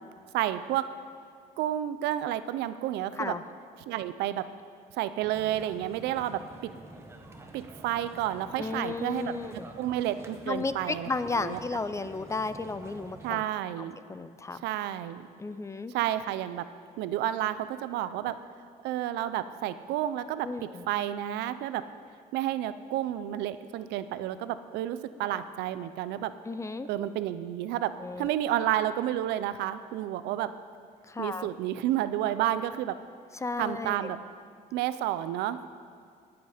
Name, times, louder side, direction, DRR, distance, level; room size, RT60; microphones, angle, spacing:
voice 1, 0.3-0.9 1.6-3.3 3.9-4.5 4.9-6.7 7.5-9.3 9.8-11.1 11.4-11.6 13.2-14.0 14.6-15.3 15.9-16.6 17.0-18.4 18.8-21.8 22.3-26.3 26.9-27.9 28.2-30.5 31.2-33.0 33.6-34.2 34.7-35.8, right 12 dB, 90° right, 13 dB, 0.6 m, -30 dB
sound 1, 5.3-13.3, right 2 dB, 15° right, 1.3 m, -48 dB
voice 2, 8.6-9.7 10.4-13.4 14.1-14.7 15.4-15.9 20.4-20.8 26.4-26.9 28.0-28.4 31.1-31.5 33.4-34.1, left 3 dB, 15° left, 12 dB, 0.5 m, -34 dB
19.5 x 8.0 x 5.1 m, 2.2 s
cardioid pair, 110°, 17 cm